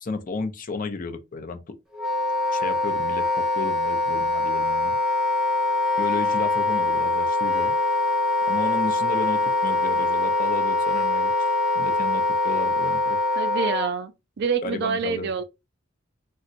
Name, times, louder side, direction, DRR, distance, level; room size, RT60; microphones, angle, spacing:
voice 1, 0.0-1.8 2.5-5.0 6.0-7.8 8.5-13.2 14.6-15.3, left 3 dB, 45° left, 0.5 m, -33 dB
Wind instrument woodwind instrument, 1.9-13.9, left 2 dB, ahead, 0.6 m, -23 dB
voice 2, 13.4-14.1 14.4-15.4, right 5 dB, 55° right, 0.4 m, -26 dB
3.8 x 2.1 x 2.5 m
head